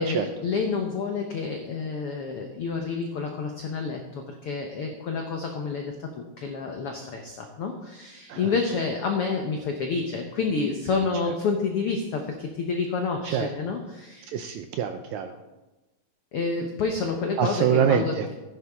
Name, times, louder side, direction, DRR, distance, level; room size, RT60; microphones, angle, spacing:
voice 1, 0.0-14.3 16.3-18.3, left 4 dB, 90° left, 3 dB, 1.2 m, -29 dB
voice 2, 14.3-15.4 17.4-18.3, right 8 dB, 80° right, 7 dB, 1.7 m, -25 dB
14.5 x 10.5 x 3.6 m, 1.1 s
omnidirectional pair, 3.9 m